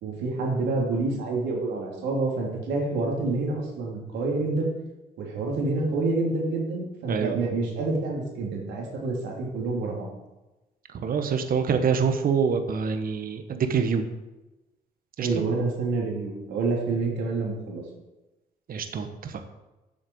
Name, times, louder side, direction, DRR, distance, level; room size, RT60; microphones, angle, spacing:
voice 1, 0.0-4.7 5.2-10.1 15.2-17.8, right 3 dB, 85° right, -1 dB, 2.9 m, -28 dB
voice 2, 10.9-14.1 15.2-15.4 18.7-19.4, right 6 dB, 55° right, 7 dB, 1.3 m, -26 dB
8.2 x 6.5 x 7.9 m, 1.0 s
cardioid pair, 80°, 18 cm